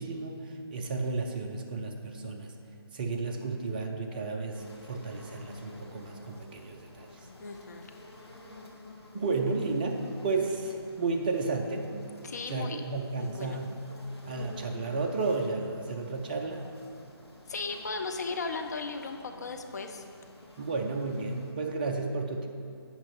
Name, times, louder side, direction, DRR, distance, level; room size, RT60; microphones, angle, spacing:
voice 1, 0.0-2.5 2.9-7.1 9.1-11.9 12.5-13.7 14.2-16.7 20.6-22.5, right 3 dB, 20° right, 3 dB, 0.5 m, -32 dB
sound 1, 4.5-21.5, left 1 dB, 85° left, 1.2 m, -50 dB
voice 2, 7.4-7.9 12.2-12.8 13.2-13.6 17.5-20.0, left 4 dB, 40° left, 5 dB, 0.5 m, -36 dB
8.5 x 5.2 x 4.7 m, 2.4 s
figure-of-eight pair, 150°, 13 cm